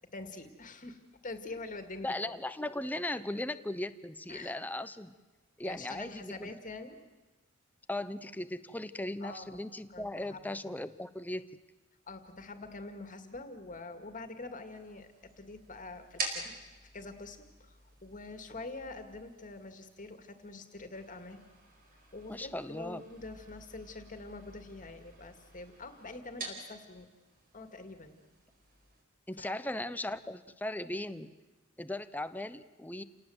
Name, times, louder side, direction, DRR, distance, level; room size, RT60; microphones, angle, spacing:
voice 1, 0.1-1.0 1.2-2.3 4.3-4.5 5.6-7.0 9.2-9.6 9.9-10.4 12.1-16.5 16.9-21.4 22.1-27.1 27.5-28.2 29.4-29.6, left 3 dB, 40° left, 7 dB, 2.1 m, -45 dB
voice 2, 2.0-5.1 5.6-6.5 7.9-11.5 22.3-23.0 29.3-31.3 31.8-33.0, left 1 dB, 10° left, 12 dB, 0.8 m, -38 dB
sound 1, 14.6-29.0, right 3 dB, 45° right, 4.7 m, -47 dB
29.0 x 18.5 x 8.0 m, 1.2 s
head